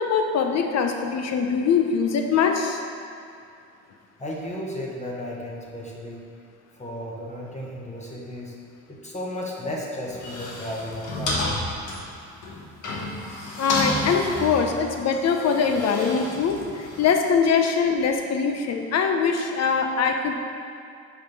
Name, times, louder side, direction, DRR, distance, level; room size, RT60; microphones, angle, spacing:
voice 1, 0.0-2.8 13.6-20.4, left 6 dB, 60° left, 4 dB, 0.8 m, -22 dB
voice 2, 4.2-6.3 6.7-8.6 8.9-11.6, left 1 dB, 25° left, -3 dB, 1.1 m, -34 dB
sound 1, 10.0-17.1, left 1 dB, 80° left, 1.3 m, -31 dB
5.3 x 5.0 x 5.4 m, 2.5 s
cardioid pair, 95°, 30 cm